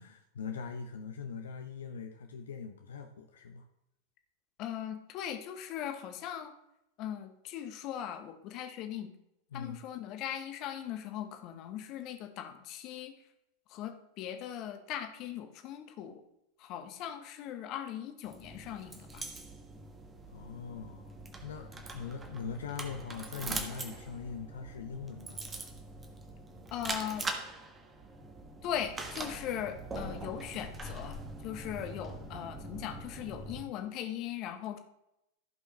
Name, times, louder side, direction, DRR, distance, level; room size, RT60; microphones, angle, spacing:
voice 1, 0.0-3.6 9.5-9.8 20.3-21.1 21.4-25.4, left 6 dB, 65° left, 5 dB, 0.8 m, -42 dB
voice 2, 4.6-6.5 7.0-9.1 9.5-13.1 13.7-16.2 16.6-19.2 26.7-27.3 28.6-31.2 31.4-34.8, left 10 dB, 40° left, 7 dB, 1.2 m, -39 dB
sound 1, 18.2-33.6, right 2 dB, 20° right, 1.4 m, -43 dB
15.0 x 5.6 x 3.2 m, 0.85 s
figure-of-eight pair, 90°, 0 cm